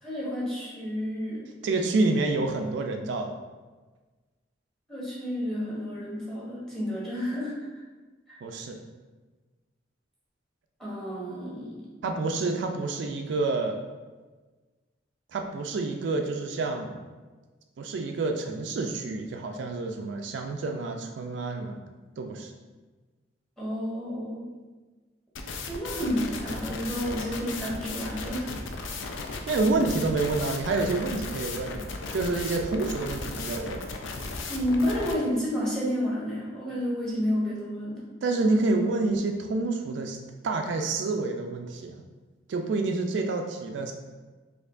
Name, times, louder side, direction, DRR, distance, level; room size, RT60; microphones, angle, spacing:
voice 1, 0.0-1.5 4.9-7.5 8.3-8.4 10.8-11.8 23.6-24.4 25.7-28.5 34.5-38.0, equal, ahead, -7 dB, 1.0 m, -30 dB
voice 2, 1.6-3.4 8.4-8.8 12.0-13.8 15.3-17.0 17.8-21.8 22.2-22.5 29.5-31.8 32.1-33.8 38.2-40.2 40.4-42.0 42.5-43.9, right 3 dB, 70° right, 4 dB, 0.3 m, -28 dB
sound 1, 25.4-35.1, left 3 dB, 85° left, 0.4 m, -36 dB
4.3 x 2.7 x 2.5 m, 1.3 s
head